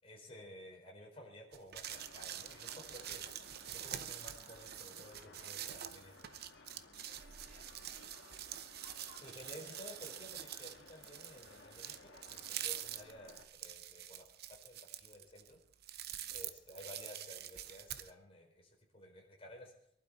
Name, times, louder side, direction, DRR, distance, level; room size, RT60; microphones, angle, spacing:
voice 1, 0.0-3.2 3.7-6.1 9.2-14.3 14.6-15.6 16.3-19.7, left 1 dB, 30° left, -1 dB, 4.7 m, -54 dB
sound 1, 1.5-18.1, right 11 dB, 55° right, 0.8 m, -46 dB
sound 2, 1.8-13.5, left 3 dB, 70° left, 1.7 m, -59 dB
voice 2, 3.3-3.6 6.9-8.6 16.1-16.4, right 1 dB, 40° right, 1 dB, 5.0 m, -67 dB
22.5 x 11.5 x 4.3 m, 0.70 s
head